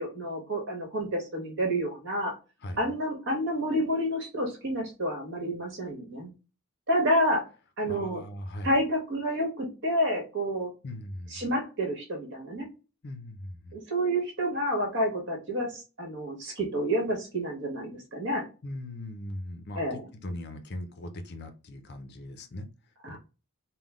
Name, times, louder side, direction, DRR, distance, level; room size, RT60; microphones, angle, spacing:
voice 1, 0.0-2.4 2.8-6.3 6.9-7.5 7.8-8.2 8.6-10.7 11.3-12.7 13.7-18.5 19.7-20.1 23.0-23.2, equal, 55° right, 1.5 m, -29 dB
voice 2, 7.8-8.8 10.8-11.4 13.0-13.8 18.6-22.7 23.1-23.2, left 1 dB, 50° left, 0.5 m, -39 dB
3.7 x 2.2 x 3.6 m
head